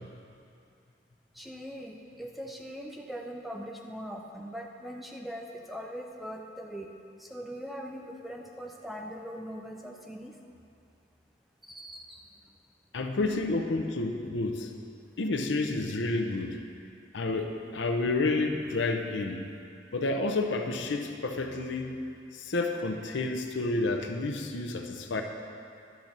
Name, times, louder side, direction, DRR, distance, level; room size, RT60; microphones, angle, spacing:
voice 1, 1.3-6.9 7.2-10.4 11.6-12.5, equal, ahead, 1 dB, 0.5 m, -41 dB
voice 2, 12.9-14.7 15.2-16.6 17.1-19.5 19.9-22.0 22.3-25.2, left 2 dB, 85° left, 4 dB, 0.7 m, -30 dB
10.5 x 4.0 x 7.3 m, 2.5 s
head